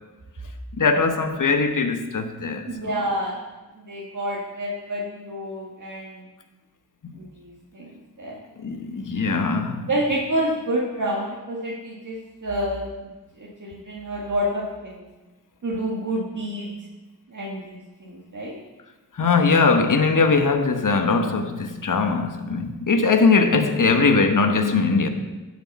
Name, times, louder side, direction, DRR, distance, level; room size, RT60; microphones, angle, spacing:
voice 1, 0.7-3.1 7.0-7.2 8.6-9.9 19.1-25.1, left 4 dB, 60° left, 1.1 m, -21 dB
voice 2, 2.7-3.4 3.8-6.2 7.1-7.3 7.7-8.4 9.9-12.9 13.4-15.1 15.6-16.7 17.3-18.5, equal, 60° right, 1.9 m, -28 dB
15.5 x 6.4 x 4.2 m
wide cardioid pair, 70°, 35 cm